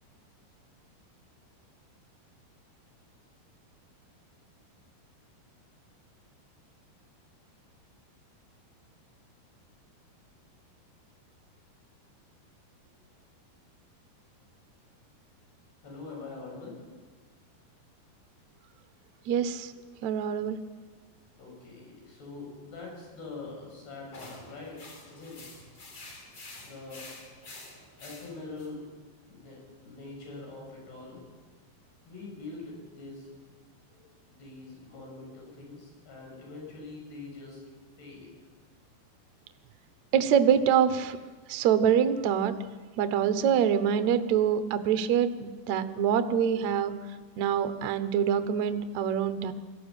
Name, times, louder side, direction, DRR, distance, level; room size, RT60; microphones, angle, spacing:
voice 1, 15.8-16.8 21.4-25.5 26.6-27.0 28.0-28.8 29.3-31.2 32.1-33.3 33.9-37.6 38.0-38.3, left 3 dB, 75° left, -2 dB, 9.0 m, -44 dB
voice 2, 19.3-19.7 20.0-20.6 40.1-41.2 41.5-42.5 43.0-46.9 47.4-49.5, right 8 dB, 75° right, 10 dB, 1.7 m, -25 dB
sound 1, 24.1-28.7, left 2 dB, 40° left, 4.5 m, -48 dB
21.0 x 14.5 x 9.0 m, 1.4 s
omnidirectional pair, 4.7 m